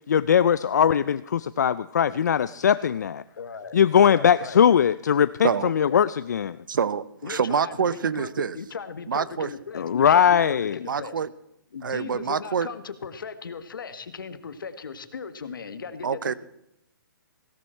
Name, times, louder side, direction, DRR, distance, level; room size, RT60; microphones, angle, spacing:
voice 1, 0.1-3.2 3.7-6.6 9.8-10.8, left 8 dB, 55° left, 15 dB, 0.4 m, -20 dB
voice 2, 3.4-3.8 4.1-4.8 5.9-6.0 7.2-11.2 11.7-16.3, left 5 dB, 70° left, 11 dB, 1.5 m, -37 dB
voice 3, 6.7-8.6 9.1-9.5 10.9-11.3 11.8-12.7 16.0-16.3, right 7 dB, 65° right, 18 dB, 0.8 m, -26 dB
17.0 x 12.5 x 4.4 m, 0.82 s
hypercardioid pair, 180°, 12 cm